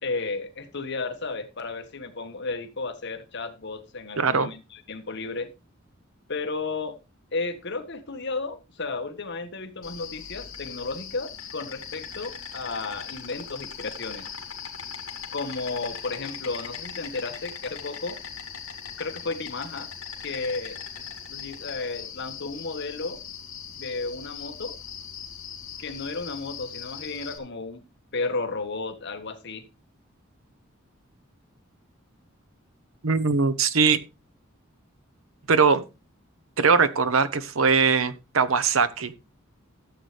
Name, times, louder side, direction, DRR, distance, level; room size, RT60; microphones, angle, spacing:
voice 1, 0.0-5.5 6.3-7.0 7.3-14.3 15.3-18.2 19.0-19.9 20.2-20.8 21.3-23.2 23.7-24.7 25.8-27.8 28.1-29.6, left 3 dB, 55° left, 1.4 m, -33 dB
voice 2, 4.2-4.5 33.0-34.0 35.5-35.8 36.6-39.1, right 5 dB, 80° right, 0.9 m, -21 dB
Insect, 9.8-27.4, left 7 dB, 75° left, 2.6 m, -39 dB
13.5 x 7.9 x 3.3 m
head